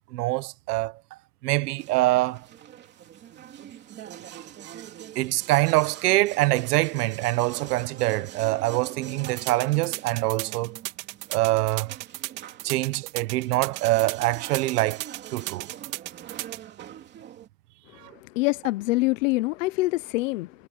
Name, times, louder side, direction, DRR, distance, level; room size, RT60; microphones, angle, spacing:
voice 1, 0.1-2.5 4.7-4.8 5.1-10.8 11.3-11.9 12.6-15.0 15.3-15.7 18.0-18.1, right 19 dB, 85° right, 1.1 m, -24 dB
sound 1, 1.6-17.5, right 10 dB, 25° right, 2.9 m, -45 dB
sound 2, 9.2-16.6, right 22 dB, 60° right, 3.2 m, -35 dB
voice 2, 17.9-20.7, left 21 dB, 60° left, 0.7 m, -26 dB
supercardioid pair, 175°, 45 cm